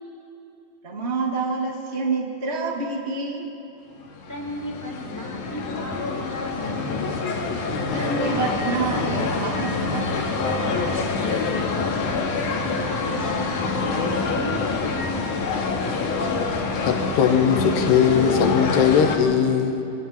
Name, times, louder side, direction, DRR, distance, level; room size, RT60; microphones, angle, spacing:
voice 1, 0.8-3.4 7.9-10.1 10.5-11.0, right 4 dB, 85° right, 0 dB, 0.5 m, -28 dB
sound 1, 4.1-19.2, left 4 dB, 55° left, 2.9 m, -26 dB
voice 2, 4.3-6.9 11.2-11.9 12.5-15.1, left 1 dB, 5° left, -3 dB, 3.7 m, -35 dB
voice 3, 16.9-19.8, left 7 dB, 75° left, 6 dB, 3.2 m, -19 dB
28.0 x 23.5 x 4.3 m, 2.8 s
omnidirectional pair, 4.8 m